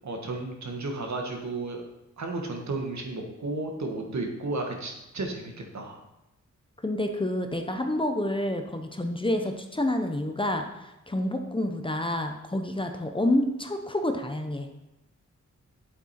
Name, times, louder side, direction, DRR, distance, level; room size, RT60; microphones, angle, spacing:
voice 1, 0.0-1.8 2.2-6.0, right 2 dB, 65° right, 2 dB, 1.6 m, -33 dB
voice 2, 6.8-14.7, left 1 dB, 15° left, 5 dB, 0.8 m, -28 dB
9.0 x 7.7 x 4.3 m, 0.93 s
wide cardioid pair, 140°, 30 cm